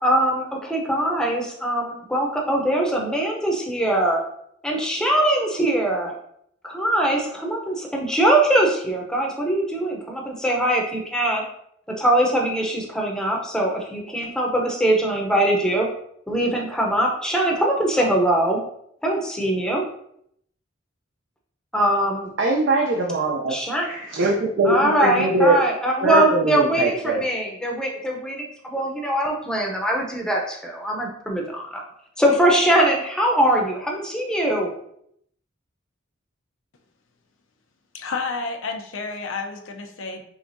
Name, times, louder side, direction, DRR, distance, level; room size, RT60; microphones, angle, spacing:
voice 1, 0.0-4.2 4.6-6.1 6.6-11.4 12.0-15.9 16.3-18.6 19.0-19.8 21.7-22.3 23.5-23.9 24.6-31.8 32.2-34.7, right 1 dB, 5° left, -1 dB, 0.6 m, -22 dB
voice 2, 22.4-23.5 23.8-25.6 26.0-27.2, right 2 dB, 70° right, 0 dB, 0.5 m, -21 dB
voice 3, 37.9-40.2, left 4 dB, 90° left, 4 dB, 0.6 m, -30 dB
4.8 x 3.4 x 2.6 m, 0.71 s
head